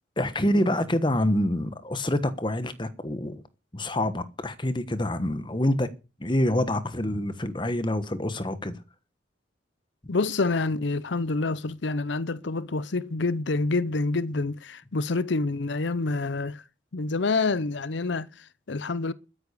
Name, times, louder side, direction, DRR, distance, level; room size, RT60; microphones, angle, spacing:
voice 1, 0.2-3.4 3.7-5.9 6.2-8.8, left 1 dB, 25° left, 1.3 m, -26 dB
voice 2, 10.1-16.6 16.9-19.1, left 3 dB, 70° left, 0.7 m, -27 dB
13.0 x 10.5 x 6.7 m
head